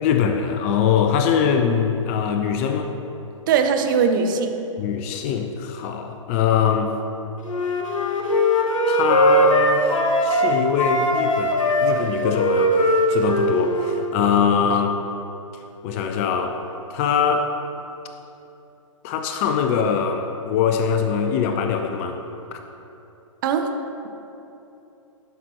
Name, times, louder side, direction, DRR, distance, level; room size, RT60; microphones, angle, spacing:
voice 1, 0.0-2.9 4.8-6.9 8.3-8.4 8.9-14.9 15.8-16.6 16.9-17.5 19.0-22.2 22.5-22.6, left 7 dB, 25° left, 6 dB, 0.4 m, -22 dB
voice 2, 3.5-4.5 14.7-14.8 23.4-23.7, right 6 dB, 40° right, 6 dB, 0.6 m, -20 dB
Wind instrument woodwind instrument, 7.5-10.5 10.8-14.1, equal, 70° left, 1.2 m, -20 dB
11.0 x 5.7 x 3.0 m, 2.9 s
figure-of-eight pair, 115°, 17 cm